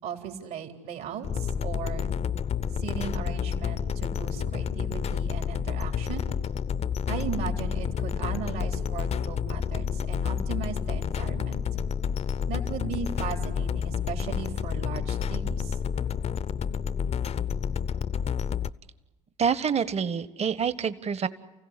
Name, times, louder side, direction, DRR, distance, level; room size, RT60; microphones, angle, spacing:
voice 1, 0.0-2.1 2.7-6.3 7.1-11.6 12.5-15.8, right 7 dB, 70° right, 4 dB, 3.7 m, -37 dB
sound 1, 1.2-18.7, left 7 dB, 40° left, 0.7 m, -29 dB
voice 2, 19.4-21.3, right 6 dB, 40° right, 14 dB, 1.4 m, -27 dB
29.5 x 16.0 x 9.9 m, 1.1 s
hypercardioid pair, 60°, 16 cm